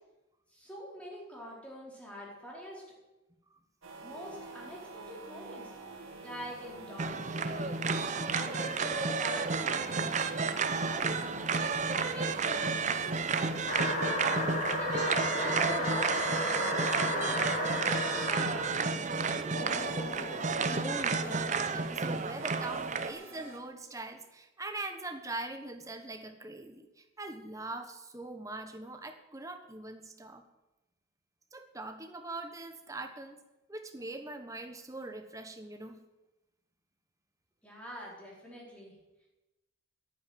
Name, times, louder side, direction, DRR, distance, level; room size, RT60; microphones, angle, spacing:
voice 1, 0.5-2.8 4.0-10.1 10.4-13.2 14.8-17.7 18.2-19.5 37.6-38.9, equal, 5° left, -4 dB, 4.2 m, -44 dB
sound 1, 3.8-23.6, right 3 dB, 90° right, 2.4 m, -48 dB
sound 2, 7.0-23.1, right 4 dB, 35° right, 0.7 m, -31 dB
sound 3, 13.7-18.7 19.5-22.0, left 1 dB, 35° left, 3.6 m, -34 dB
voice 2, 20.7-30.4 31.5-33.4 33.7-36.0, right 2 dB, 15° right, 6 dB, 1.3 m, -42 dB
11.0 x 9.8 x 9.5 m, 1.0 s
head